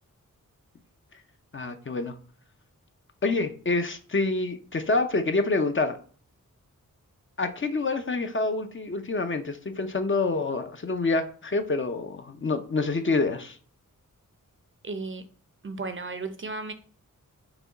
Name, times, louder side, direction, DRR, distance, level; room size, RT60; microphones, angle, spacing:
voice 1, 1.5-2.1 3.2-6.0 7.4-13.6, left 3 dB, 35° left, 0.5 m, -27 dB
voice 2, 14.8-15.2 15.6-16.7, right 3 dB, 40° right, 0.6 m, -34 dB
5.9 x 2.2 x 3.9 m
wide cardioid pair, 85°, 33 cm